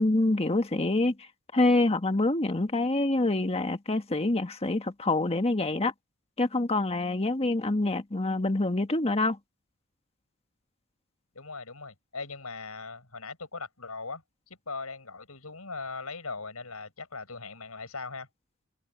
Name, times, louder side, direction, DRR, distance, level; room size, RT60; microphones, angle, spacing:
voice 1, 0.0-5.9 6.4-9.4, left 2 dB, 30° left, 1.5 m, -26 dB
voice 2, 11.3-18.3, left 4 dB, 80° left, 6.5 m, -40 dB
head